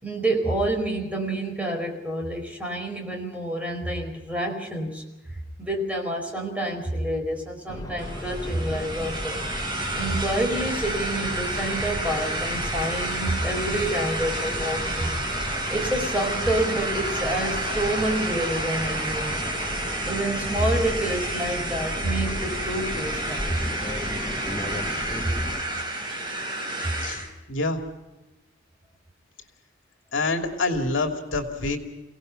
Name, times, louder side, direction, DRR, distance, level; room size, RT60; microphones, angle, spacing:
voice 1, 0.0-5.0 5.6-9.4 9.9-15.1 15.7-19.4 20.0-23.7 25.2-25.3, right 1 dB, 5° right, 2 dB, 4.7 m, -28 dB
sound 1, 7.7-25.6, left 1 dB, 20° left, 1.1 m, -35 dB
sound 2, 8.0-27.3, right 1 dB, 25° right, 4.6 m, -30 dB
voice 2, 27.5-27.8 30.1-31.8, left 3 dB, 70° left, 4 dB, 2.7 m, -26 dB
29.5 x 17.5 x 5.3 m, 1.0 s
head